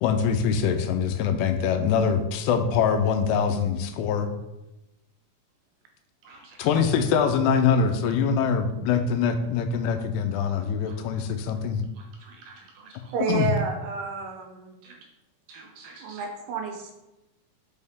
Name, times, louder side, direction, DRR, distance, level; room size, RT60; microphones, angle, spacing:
voice 1, 0.0-4.3 6.6-11.8 13.3-13.5, left 6 dB, 90° left, 8 dB, 2.7 m, -23 dB
voice 2, 6.2-6.7 10.8-11.0 11.9-13.1 14.8-15.1 15.5-16.3, right 4 dB, 65° right, 0 dB, 2.6 m, -49 dB
voice 3, 13.1-14.7 16.0-16.9, right 5 dB, 85° right, 3 dB, 3.0 m, -30 dB
6.5 x 5.3 x 3.6 m, 0.97 s
omnidirectional pair, 4.6 m